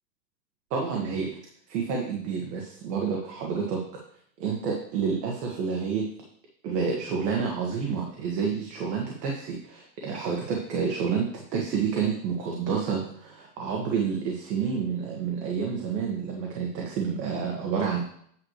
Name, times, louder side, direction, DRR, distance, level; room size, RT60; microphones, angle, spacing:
voice 1, 0.7-1.3 1.7-3.8 4.4-6.0 6.6-18.0, right 6 dB, 75° right, -1 dB, 1.8 m, -29 dB
9.5 x 3.2 x 6.6 m, 0.67 s
supercardioid pair, 150°, 49 cm